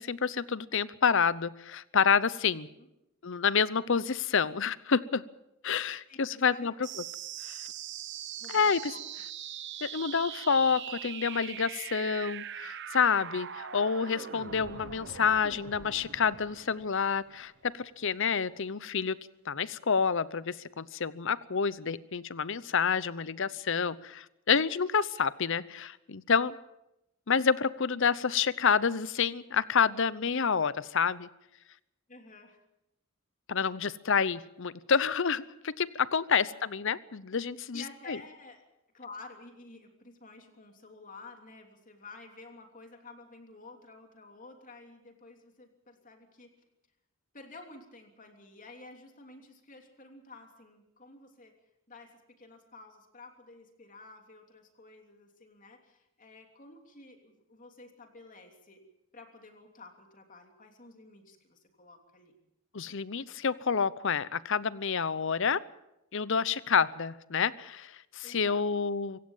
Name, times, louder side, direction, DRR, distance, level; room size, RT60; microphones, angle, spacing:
voice 1, 0.0-2.7 3.2-5.2 5.6-6.7 7.5-7.6 8.5-8.8 9.8-19.2 19.5-26.6 27.3-31.3 33.5-38.2 62.7-65.6 66.1-69.2, left 6 dB, 60° left, 18 dB, 0.8 m, -28 dB
voice 2, 6.1-6.7 8.4-9.0 26.3-26.5 32.1-32.6 36.4-36.6 37.7-38.6 38.9-46.5 47.3-51.5 51.9-58.8 59.1-62.4 68.2-68.7, left 3 dB, 40° left, 4 dB, 3.1 m, -51 dB
sound 1, 6.8-17.8, right 9 dB, 55° right, 1.0 m, -42 dB
25.5 x 16.5 x 7.3 m, 0.88 s
head